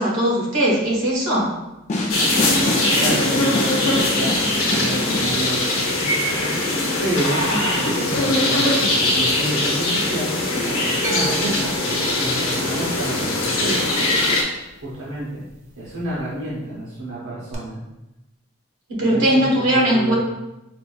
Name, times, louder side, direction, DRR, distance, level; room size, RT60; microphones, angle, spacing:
voice 1, 0.0-1.5 7.5-7.7 8.8-8.9 18.9-20.1, right 1 dB, 85° right, -3 dB, 1.2 m, -19 dB
sound 1, 1.9-5.3, left 2 dB, 35° left, 0.4 m, -26 dB
sound 2, 2.1-14.4, left 2 dB, 75° left, 0.8 m, -21 dB
voice 2, 2.4-4.4 4.7-7.4 7.7-8.7 9.0-14.2 14.8-15.4 15.8-17.8 19.0-20.1, right 1 dB, 65° right, -8 dB, 0.8 m, -30 dB
sound 3, 11.0-15.2 15.5-16.2 17.5-17.6, right 1 dB, 35° right, 0.6 m, -34 dB
5.0 x 2.5 x 2.3 m, 0.95 s
head